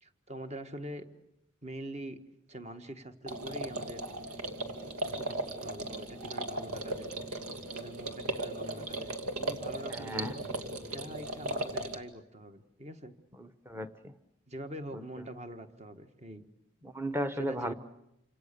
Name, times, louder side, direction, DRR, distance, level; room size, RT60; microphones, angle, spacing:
voice 1, 0.0-1.1 1.6-2.2 2.5-4.0 5.1-7.1 7.7-10.5 10.9-13.1 14.5-16.5 17.3-17.7, right 1 dB, 30° right, 8 dB, 1.5 m, -44 dB
sound 1, 3.3-12.0, right 2 dB, 90° right, 2.4 m, -37 dB
voice 2, 9.9-10.3 13.4-14.1 16.8-17.7, equal, 10° right, 9 dB, 1.1 m, -35 dB
28.5 x 26.5 x 6.9 m, 0.82 s
head